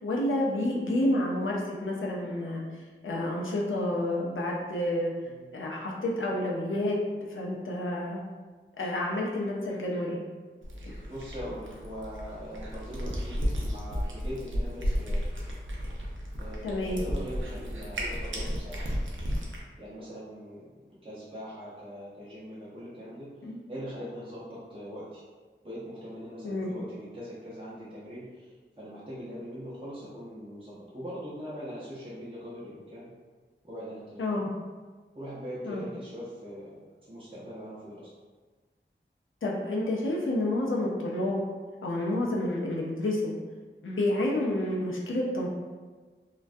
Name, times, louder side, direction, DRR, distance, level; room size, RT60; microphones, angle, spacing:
voice 1, 0.0-2.7 3.0-5.1 5.5-7.0 7.3-8.2 8.8-10.2 16.6-17.0 23.4-23.6 26.4-26.7 34.2-34.5 35.7-35.8 39.4-41.4 41.8-43.3 43.8-45.5, left 1 dB, 85° left, -3 dB, 0.4 m, -29 dB
voice 2, 5.2-5.6 11.1-15.2 16.4-19.0 19.8-23.3 23.7-25.2 25.6-33.1 33.6-34.4 35.1-36.8 37.1-38.1, equal, 25° right, -10 dB, 0.6 m, -41 dB
Cat, 10.6-19.6, equal, 75° right, 0.5 m, -33 dB
2.2 x 2.1 x 2.5 m, 1.4 s
wide cardioid pair, 50°, 20 cm